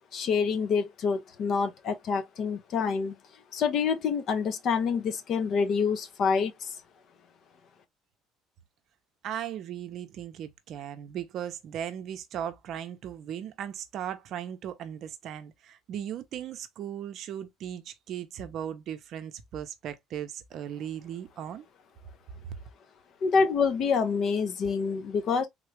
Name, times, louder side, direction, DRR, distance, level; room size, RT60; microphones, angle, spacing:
voice 1, 0.1-3.1 3.5-6.7 23.2-25.5, left 5 dB, 45° left, 0.6 m, -27 dB
voice 2, 9.2-21.7 22.4-22.5, right 9 dB, 50° right, 0.6 m, -37 dB
3.6 x 2.3 x 3.0 m
cardioid pair, 150°, 0 cm